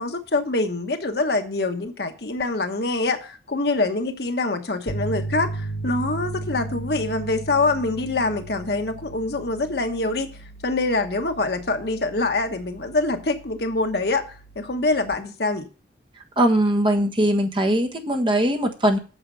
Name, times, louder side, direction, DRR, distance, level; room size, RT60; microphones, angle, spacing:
voice 1, 0.0-10.3 10.6-14.2 14.5-15.6, left 2 dB, 65° left, 1.2 m, -25 dB
Piano, 4.9-15.1, right 2 dB, 85° left, 1.6 m, -36 dB
voice 2, 16.4-19.0, right 1 dB, 30° right, 1.4 m, -20 dB
8.8 x 6.5 x 6.2 m
head